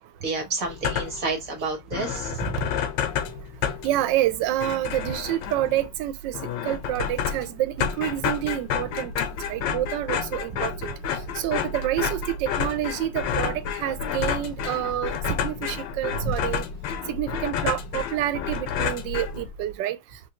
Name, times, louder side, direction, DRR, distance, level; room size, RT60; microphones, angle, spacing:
voice 1, 0.2-2.3 16.2-16.3, right 3 dB, 50° right, 1.4 m, -29 dB
sound 1, 0.6-1.3 1.6-1.7 1.9-19.7, left 7 dB, 85° left, 1.4 m, -30 dB
voice 2, 3.8-6.4 6.6-9.1 9.5-10.9 11.4-16.6 17.1-20.0, right 13 dB, 85° right, 1.3 m, -28 dB
3.7 x 2.6 x 2.8 m
omnidirectional pair, 1.9 m